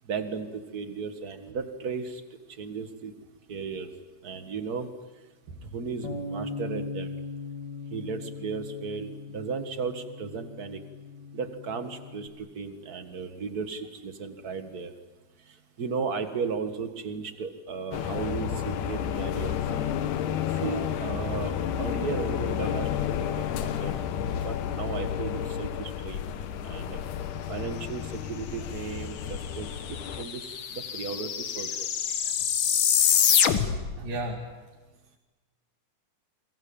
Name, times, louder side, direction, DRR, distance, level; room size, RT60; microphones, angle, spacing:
voice 1, 0.1-2.2 2.6-3.1 3.5-3.9 4.2-4.9 5.7-7.1 7.9-10.8 11.3-14.9 15.8-19.5 20.6-23.1 23.4-23.9 24.4-26.2 26.7-27.0 27.5-29.7 30.2-31.7, right 5 dB, 40° right, 8 dB, 1.6 m, -35 dB
Bass guitar, 6.0-12.3, left 3 dB, 35° left, 3.0 m, -39 dB
sound 1, 17.9-30.3, left 9 dB, 75° left, 2.6 m, -31 dB
sound 2, 29.4-29.5 29.7-34.0, left 8 dB, 55° left, 1.6 m, -25 dB
voice 2, 33.7-34.5, right 1 dB, 90° right, -1 dB, 4.3 m, -35 dB
29.5 x 22.5 x 8.8 m, 1.2 s
omnidirectional pair, 3.7 m